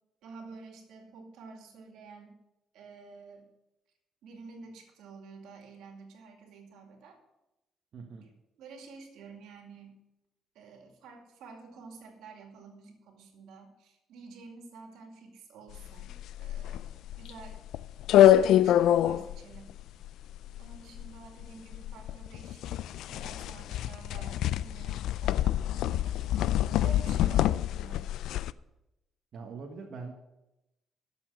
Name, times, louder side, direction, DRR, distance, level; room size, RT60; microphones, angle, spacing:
voice 1, 0.2-2.4 2.7-3.5 4.2-7.2 8.6-10.0 10.5-17.6 18.2-19.8 20.6-22.7 23.1-26.1 26.8-28.1, right 4 dB, 90° right, 3 dB, 2.4 m, -50 dB
voice 2, 7.9-8.3 27.0-27.4 29.3-30.1, right 4 dB, 60° right, 0 dB, 1.4 m, -43 dB
sound 1, 15.8-28.5, left 12 dB, 85° left, 0.3 m, -26 dB
12.0 x 7.3 x 6.2 m, 0.95 s
cardioid pair, 90°, 0 cm